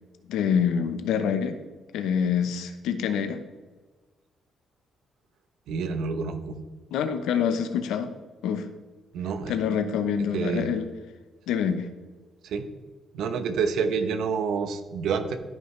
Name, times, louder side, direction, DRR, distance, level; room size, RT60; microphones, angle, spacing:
voice 1, 0.3-1.6 1.9-3.4 6.9-8.1 8.4-8.7 9.5-10.9 11.5-11.9, left 7 dB, 85° left, 9 dB, 0.8 m, -26 dB
voice 2, 5.7-6.6 9.1-9.5 10.3-10.7 12.4-12.7 13.1-15.4, right 5 dB, 80° right, 8 dB, 0.9 m, -28 dB
13.5 x 5.7 x 3.3 m, 1.3 s
cardioid pair, 90°, 0 cm